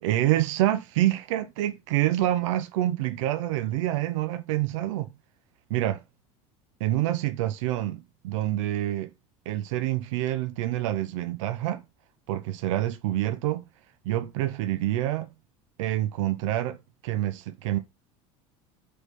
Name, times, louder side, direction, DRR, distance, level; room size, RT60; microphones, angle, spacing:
voice 1, 0.0-5.1 5.7-6.0 6.8-9.1 9.5-11.8 12.3-13.6 14.1-15.3 15.8-16.8 17.0-17.8, right 14 dB, 80° right, 0.5 m, -27 dB
3.1 x 3.1 x 4.3 m
hypercardioid pair, 90°, 16 cm